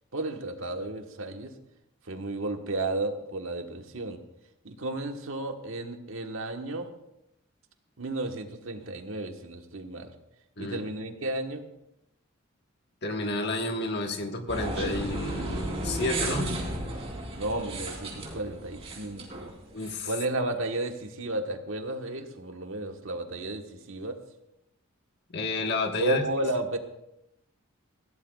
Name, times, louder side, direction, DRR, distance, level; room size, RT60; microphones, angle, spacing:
voice 1, 0.1-1.5 2.1-4.2 4.6-6.9 8.0-10.1 10.6-11.6 17.4-19.5 20.0-24.2 26.0-26.8, right 2 dB, 75° right, 4 dB, 1.4 m, -33 dB
voice 2, 13.0-16.5 19.7-20.1 25.3-26.2, left 2 dB, 55° left, 4 dB, 1.5 m, -30 dB
sound 1, 14.5-19.9, right 1 dB, 30° right, 3.5 m, -34 dB
20.5 x 16.0 x 2.4 m, 0.84 s
head